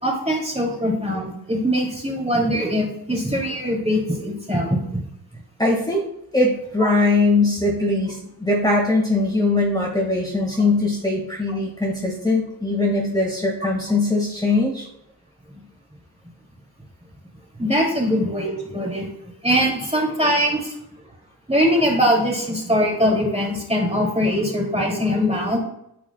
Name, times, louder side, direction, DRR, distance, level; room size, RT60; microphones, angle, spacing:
voice 1, 0.0-4.8 17.6-19.1 19.4-20.7 21.5-25.6, equal, 15° right, -2 dB, 2.9 m, -22 dB
voice 2, 5.6-6.0 6.3-14.9, left 2 dB, 10° left, -3 dB, 2.1 m, -21 dB
14.0 x 5.0 x 2.4 m, 0.77 s
cardioid pair, 40°, 40 cm